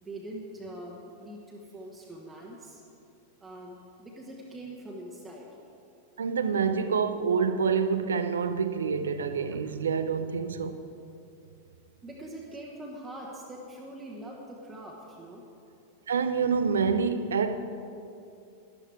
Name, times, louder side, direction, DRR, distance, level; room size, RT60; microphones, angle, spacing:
voice 1, 0.0-2.8 3.4-5.5 12.0-15.4, right 1 dB, 15° right, 1.4 m, -43 dB
voice 2, 6.2-10.8 16.1-17.6, right 6 dB, 70° right, 0.6 m, -27 dB
12.0 x 11.5 x 4.7 m
figure-of-eight pair, 90°, 0 cm